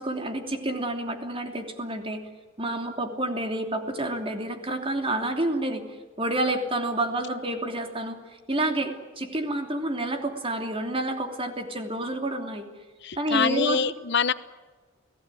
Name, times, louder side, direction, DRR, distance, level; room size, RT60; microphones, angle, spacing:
voice 1, 0.0-2.2 2.6-5.8 6.2-12.7 13.2-13.8, right 1 dB, 25° right, 5 dB, 3.1 m, -29 dB
voice 2, 13.0-14.3, left 6 dB, 60° left, 14 dB, 0.9 m, -25 dB
29.5 x 18.5 x 9.3 m, 1.3 s
head